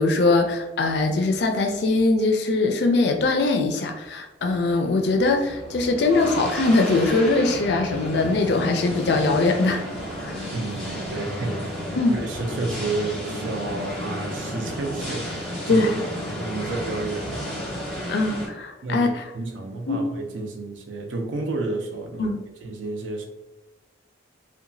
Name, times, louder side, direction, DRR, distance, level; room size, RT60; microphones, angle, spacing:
voice 1, 0.0-9.8 10.2-10.4 12.0-12.2 15.7-15.9 18.1-19.2 19.9-20.0 22.2-22.4, left 3 dB, 60° left, 5 dB, 0.4 m, -21 dB
sound 1, 4.4-18.5, equal, ahead, 0.7 m, -33 dB
voice 2, 10.5-11.8 12.1-15.9 16.4-17.4 18.8-22.3 22.6-23.3, right 2 dB, 75° right, 3 dB, 0.5 m, -31 dB
2.8 x 2.2 x 2.6 m, 1.0 s
head